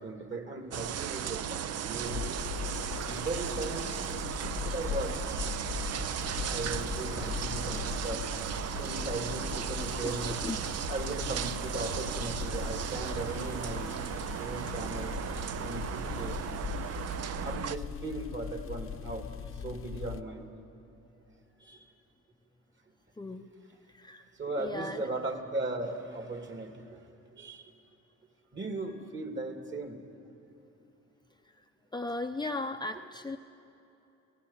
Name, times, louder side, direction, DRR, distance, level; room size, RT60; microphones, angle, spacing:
voice 1, 0.0-2.4 3.1-4.0 4.4-5.2 6.5-8.3 8.8-10.4 10.9-14.0 14.4-15.2 15.6-16.4 17.2-20.6 21.6-21.9 24.3-27.7 28.5-30.0, right 2 dB, 40° right, 4 dB, 2.7 m, -38 dB
sound 1, 0.7-17.8, right 10 dB, 55° right, 0.6 m, -36 dB
sound 2, 2.0-17.3, left 13 dB, 70° left, 0.5 m, -47 dB
sound 3, 2.0-20.2, left 7 dB, 45° left, 0.9 m, -40 dB
voice 2, 23.2-23.5 23.9-24.2 24.6-25.1 31.9-33.4, left 2 dB, 15° left, 4 dB, 0.7 m, -36 dB
30.0 x 17.5 x 5.7 m, 2.9 s
cardioid pair, 90°, 30 cm